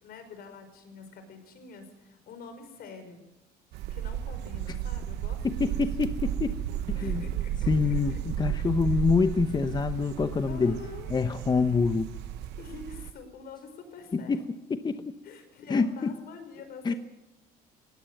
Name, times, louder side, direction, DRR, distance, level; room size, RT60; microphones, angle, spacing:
voice 1, 0.0-3.2 3.9-5.8 6.9-8.2 10.5-11.1 12.6-14.4 15.2-17.0, left 5 dB, 65° left, 8 dB, 5.1 m, -46 dB
sound 1, 3.7-13.1, right 11 dB, 85° right, 0.9 m, -33 dB
voice 2, 5.4-6.6 7.0-7.2 7.7-10.8 11.1-12.1 14.1-14.4 14.7-15.1 15.7-16.1 16.8-16.9, left 4 dB, 25° left, 9 dB, 0.9 m, -26 dB
19.5 x 16.5 x 8.0 m, 0.99 s
cardioid pair, 110°, 17 cm